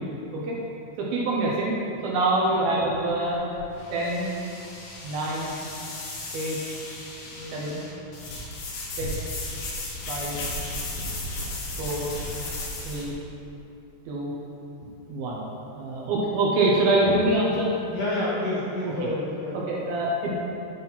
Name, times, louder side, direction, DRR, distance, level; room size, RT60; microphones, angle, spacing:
voice 1, 1.0-1.7 2.0-3.4 3.9-4.3 5.0-5.5 6.3-6.6 7.5-7.7 9.0-9.1 10.1-10.4 11.8-12.1 12.9-13.1 14.1-14.3 15.1-15.5 15.8-17.7 19.5-20.3, right 2 dB, 75° right, -4 dB, 2.5 m, -25 dB
sound 1, 2.7-13.1, left 1 dB, 80° left, 3.4 m, -35 dB
voice 2, 7.3-7.8 17.9-19.6, left 1 dB, 60° left, -9 dB, 2.9 m, -30 dB
8.8 x 4.1 x 5.5 m, 2.7 s
omnidirectional pair, 4.9 m